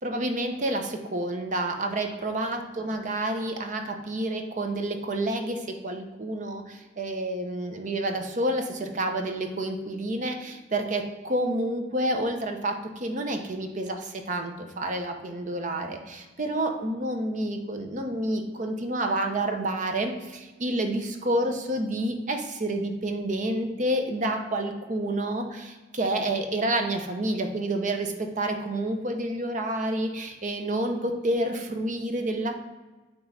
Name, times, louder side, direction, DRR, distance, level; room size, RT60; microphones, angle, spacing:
voice 1, 0.0-32.5, right 1 dB, 40° right, 5 dB, 0.7 m, -29 dB
8.8 x 3.1 x 4.0 m, 1.2 s
head